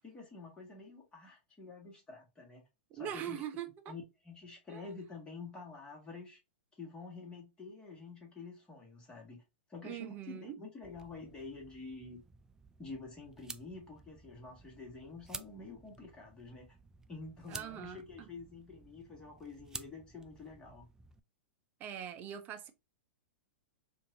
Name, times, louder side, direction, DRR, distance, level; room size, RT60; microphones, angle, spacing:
voice 1, 0.0-2.7 2.9-3.4 3.9-6.4 6.8-9.4 9.7-12.2 12.8-16.8 17.1-20.9, left 3 dB, 15° left, 1.7 m, -48 dB
voice 2, 2.9-3.9 4.7-4.9 9.8-10.6 17.5-18.3 21.8-22.7, right 10 dB, 30° right, 0.7 m, -42 dB
sound 1, 10.8-21.2, right 4 dB, 10° right, 0.3 m, -52 dB
4.4 x 2.6 x 2.7 m
hypercardioid pair, 135°, 6 cm